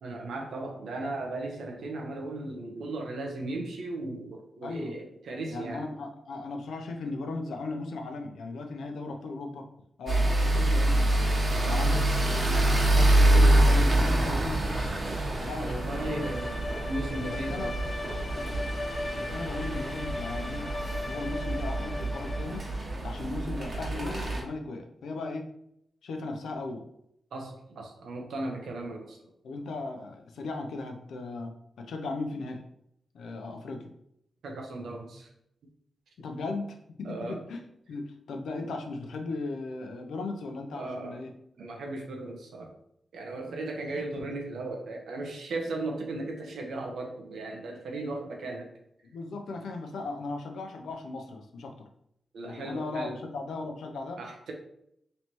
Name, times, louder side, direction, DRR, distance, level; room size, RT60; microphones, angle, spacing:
voice 1, 0.0-5.9 11.5-12.0 15.6-17.8 27.3-29.2 34.4-35.3 37.0-37.4 40.7-41.2 41.6-42.7 43.1-48.7 52.3-53.2 54.2-54.5, right 2 dB, 80° right, 2 dB, 0.8 m, -36 dB
voice 2, 4.6-4.9 5.5-9.7 10.0-11.1 11.6-14.7 15.4-16.3 17.3-17.7 18.2-18.7 19.1-20.7 21.0-22.6 23.0-25.5 26.0-26.8 29.4-32.6 33.1-33.9 36.2-36.7 37.0-37.6 37.9-41.3 49.0-51.9 52.4-54.2, left 3 dB, 85° left, 4 dB, 0.6 m, -37 dB
sound 1, 10.1-24.4, right 1 dB, 50° right, 1.2 m, -26 dB
Bowed string instrument, 15.7-22.8, left 2 dB, 35° left, 0.5 m, -38 dB
3.2 x 2.9 x 4.4 m, 0.75 s
supercardioid pair, 50°, 0 cm